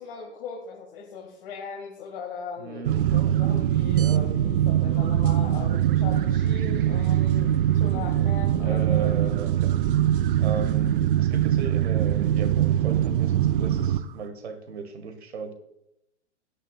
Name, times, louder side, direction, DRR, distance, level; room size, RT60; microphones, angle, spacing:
voice 1, 0.0-9.1, left 5 dB, 50° left, 0 dB, 1.8 m, -38 dB
voice 2, 2.6-3.3 8.6-9.8 10.4-15.5, right 5 dB, 65° right, 8 dB, 1.6 m, -36 dB
sound 1, 2.8-14.0, right 11 dB, 50° right, 0.6 m, -22 dB
17.0 x 9.9 x 2.3 m, 0.84 s
figure-of-eight pair, 110°, 35 cm